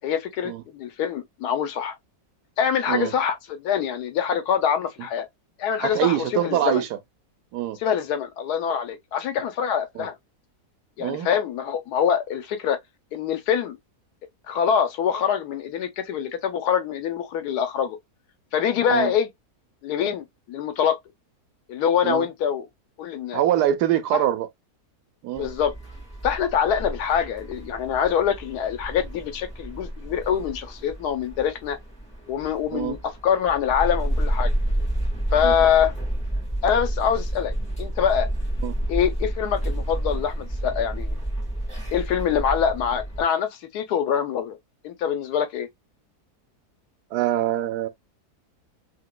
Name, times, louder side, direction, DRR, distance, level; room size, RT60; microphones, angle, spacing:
voice 1, 0.0-2.0 2.6-5.3 5.6-6.8 7.8-10.1 11.0-12.8 13.1-13.8 14.5-18.0 18.5-19.3 19.8-21.0 21.7-22.6 23.0-23.4 24.1-24.2 25.3-25.7 26.2-31.8 32.3-34.5 35.3-35.9 36.6-38.3 38.9-41.2 41.9-44.6 44.8-45.7, left 8 dB, 90° left, 1.2 m, -24 dB
voice 2, 5.8-6.9 7.5-7.8 10.0-10.1 11.0-11.3 18.9-19.1 22.0-22.3 23.3-24.5 25.2-25.5 32.7-33.0 35.4-35.6 38.6-38.8 47.1-47.9, right 12 dB, 85° right, 1.2 m, -24 dB
sound 1, 25.3-43.2, right 1 dB, 5° left, 1.7 m, -30 dB
3.2 x 2.9 x 2.2 m
omnidirectional pair, 1.7 m